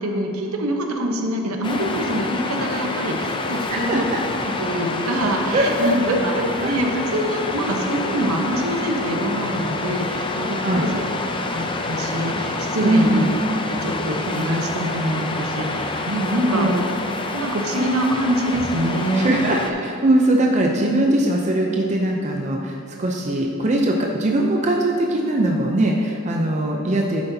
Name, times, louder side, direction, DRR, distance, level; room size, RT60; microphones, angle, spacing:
voice 1, 0.0-4.1 4.6-11.1 11.4-13.3 13.7-16.7 17.3-19.3, right 1 dB, 65° right, 2 dB, 0.9 m, -25 dB
Waves surf, 1.6-19.7, left 3 dB, 25° left, 0.4 m, -27 dB
voice 2, 3.7-4.2 5.5-6.7 10.6-10.9 12.8-13.3 16.5-16.8 19.1-27.3, right 1 dB, 30° right, 0 dB, 0.5 m, -21 dB
9.6 x 7.8 x 2.7 m, 2.9 s
head